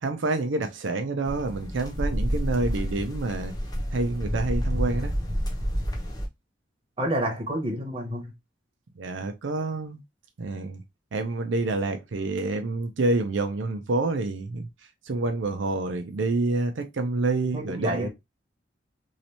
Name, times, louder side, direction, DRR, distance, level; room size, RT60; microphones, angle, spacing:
voice 1, 0.0-3.5 3.9-5.1 9.0-10.0 10.4-10.8 11.1-14.7 15.1-18.1, right 2 dB, 85° right, 0.5 m, -28 dB
sound 1, 1.2-6.3, equal, 20° left, 0.8 m, -29 dB
voice 2, 7.0-8.3 17.5-18.1, right 1 dB, 30° right, 1.2 m, -29 dB
3.1 x 2.8 x 2.8 m
head